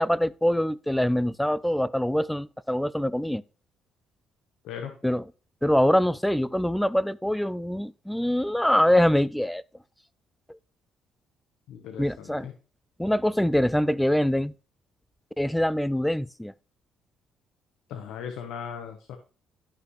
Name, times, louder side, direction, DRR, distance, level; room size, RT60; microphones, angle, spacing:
voice 1, 0.0-3.4 5.0-5.2 5.6-9.6 10.5-10.6 12.0-12.5 13.0-14.5 15.4-16.5, equal, 5° left, 0.3 m, -24 dB
voice 2, 11.7-12.5 17.9-19.2, left 7 dB, 80° left, 1.0 m, -38 dB
12.0 x 5.8 x 3.1 m
cardioid pair, 135°, 0 cm